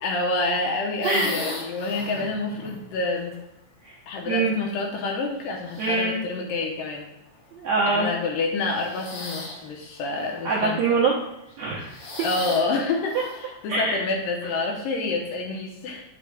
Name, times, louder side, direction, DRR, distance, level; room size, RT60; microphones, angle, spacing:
voice 1, 0.0-3.4 4.1-7.1 7.9-10.8 12.2-16.0, left 3 dB, 75° left, 0 dB, 2.3 m, -28 dB
sound 1, 1.0-3.3 4.2-4.9 5.5-6.2 7.2-7.4 8.6-9.7 10.1-10.7 11.5-13.6, left 2 dB, 55° left, 1.8 m, -38 dB
voice 2, 5.8-6.1 7.6-8.1 10.4-11.1 11.6-11.9 13.1-13.2 13.7-14.0, right 4 dB, 75° right, -4 dB, 1.7 m, -23 dB
9.4 x 6.4 x 2.3 m, 0.91 s
omnidirectional pair, 4.3 m